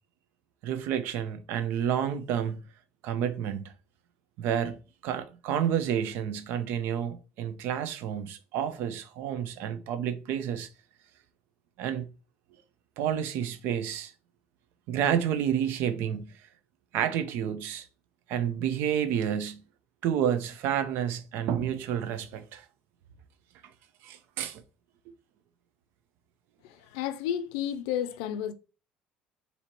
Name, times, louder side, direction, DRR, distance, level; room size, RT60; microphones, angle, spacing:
voice 1, 0.6-2.6 3.0-3.7 4.4-4.8 5.0-10.7 11.8-12.1 13.0-14.1 14.9-16.3 16.9-17.9 18.3-19.6 20.0-22.6 24.0-24.6, right 9 dB, 70° right, 0.6 m, -30 dB
voice 2, 26.6-28.5, left 10 dB, 90° left, 0.4 m, -32 dB
4.3 x 2.8 x 3.0 m
supercardioid pair, 100°, 4 cm